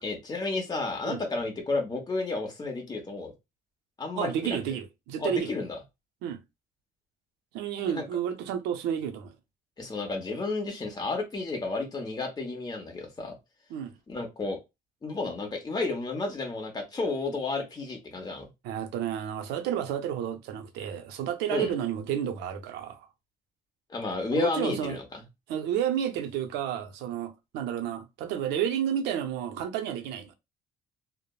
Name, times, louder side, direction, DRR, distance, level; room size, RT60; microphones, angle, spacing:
voice 1, 0.0-3.3 4.0-4.6 5.2-5.8 7.9-8.0 9.8-13.3 14.1-14.6 15.0-18.5 21.5-21.7 23.9-25.2, left 3 dB, 25° left, 1.0 m, -32 dB
voice 2, 4.1-5.5 6.2-6.4 7.5-9.3 13.7-14.0 18.6-23.1 24.3-25.0 25.5-30.3, right 9 dB, 90° right, 0.5 m, -31 dB
3.2 x 2.0 x 2.3 m
cardioid pair, 110°, 17 cm